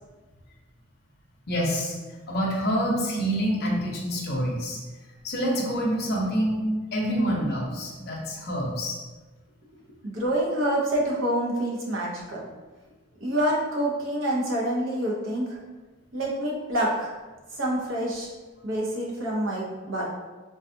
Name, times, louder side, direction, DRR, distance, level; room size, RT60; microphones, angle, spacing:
voice 1, 1.5-2.0 2.3-4.8 5.2-9.0, equal, 55° left, -2 dB, 0.6 m, -27 dB
voice 2, 10.0-12.5 13.2-15.6 16.1-17.1 17.6-18.3 18.6-20.0, right 1 dB, 80° right, -3 dB, 0.8 m, -27 dB
4.0 x 2.3 x 2.6 m, 1.3 s
head